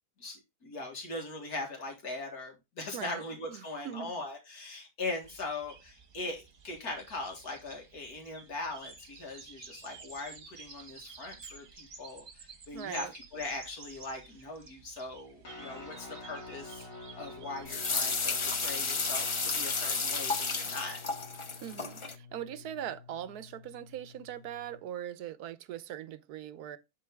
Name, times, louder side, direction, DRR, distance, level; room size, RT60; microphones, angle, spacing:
voice 1, 0.2-16.9 17.2-21.0, left 2 dB, 85° left, 2.3 m, -40 dB
voice 2, 2.9-3.2 3.5-4.1 12.7-13.1 21.6-26.8, right 10 dB, 90° right, 1.2 m, -41 dB
sound 1, 5.2-18.7, right 5 dB, 40° right, 1.1 m, -52 dB
Guitar, 15.4-24.8, left 3 dB, 60° left, 2.3 m, -49 dB
sound 2, 17.7-22.1, left 4 dB, 40° left, 0.4 m, -32 dB
11.0 x 3.7 x 3.4 m
omnidirectional pair, 1.6 m